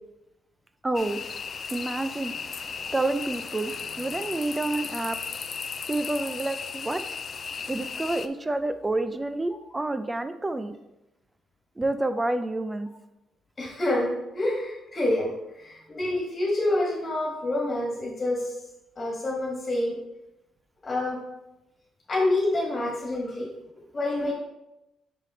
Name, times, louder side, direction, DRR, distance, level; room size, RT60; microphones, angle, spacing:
voice 1, 0.8-1.2 1.7-5.3 5.9-7.2 7.7-10.8 11.8-12.9, right 2 dB, 20° right, 10 dB, 0.5 m, -29 dB
sound 1, 0.9-8.3, left 6 dB, 45° left, 0.4 m, -35 dB
voice 2, 13.6-15.3 15.6-18.5 19.0-20.0 20.8-21.2 22.1-23.5 23.9-24.3, left 1 dB, 30° left, -3 dB, 1.9 m, -27 dB
5.9 x 4.9 x 3.7 m, 0.93 s
cardioid pair, 90°, 0 cm